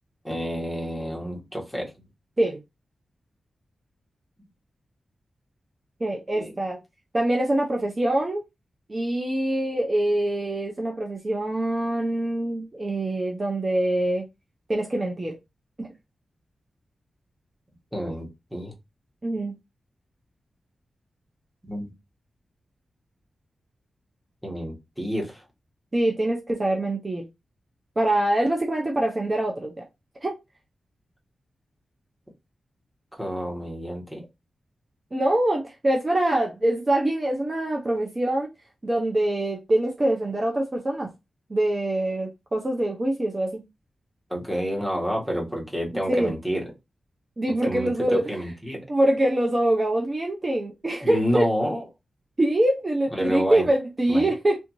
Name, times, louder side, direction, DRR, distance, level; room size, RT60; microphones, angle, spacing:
voice 1, 0.2-1.9 6.3-6.5 17.9-18.7 21.6-21.9 24.4-25.4 33.2-34.2 44.3-46.6 47.7-48.8 51.0-51.8 53.1-53.7 54.1-54.3, equal, ahead, 1.5 m, -29 dB
voice 2, 6.0-6.8 7.1-8.4 8.9-14.2 14.7-15.3 15.8-15.9 19.2-19.5 25.9-27.2 28.0-29.9 30.2-30.3 35.1-38.5 38.8-41.1 41.5-43.6 46.1-46.3 47.4-48.2 48.9-51.5 52.4-54.6, right 1 dB, 30° right, 0.7 m, -24 dB
3.4 x 2.6 x 3.0 m
cardioid pair, 75°, 0 cm